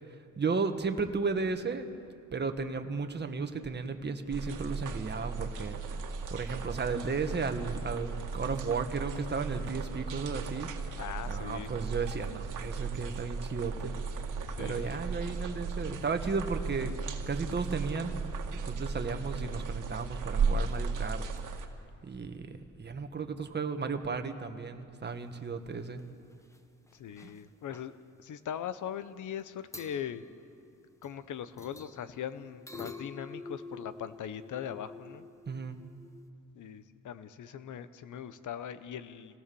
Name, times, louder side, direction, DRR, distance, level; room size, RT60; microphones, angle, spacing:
voice 1, 0.1-1.9 2.3-6.0 6.3-10.7 11.3-13.9 14.6-16.9 17.3-18.1 18.5-21.2 22.0-26.0 27.2-27.3 35.5-35.8, right 4 dB, 35° right, 6 dB, 1.6 m, -34 dB
sound 1, 4.3-21.7, right 4 dB, 80° right, 1.9 m, -36 dB
voice 2, 11.0-11.7 14.5-15.0 26.9-27.9 28.2-30.2 31.0-35.3 36.5-39.4, left 9 dB, 75° left, 12 dB, 1.1 m, -40 dB
sound 2, 25.8-26.0 26.3-26.6 26.9-27.4 27.7-27.9 29.4-29.5 29.7-31.2 31.6-36.3, left 3 dB, 10° left, 1.2 m, -48 dB
27.5 x 17.5 x 7.0 m, 2.4 s
cardioid pair, 90°, 31 cm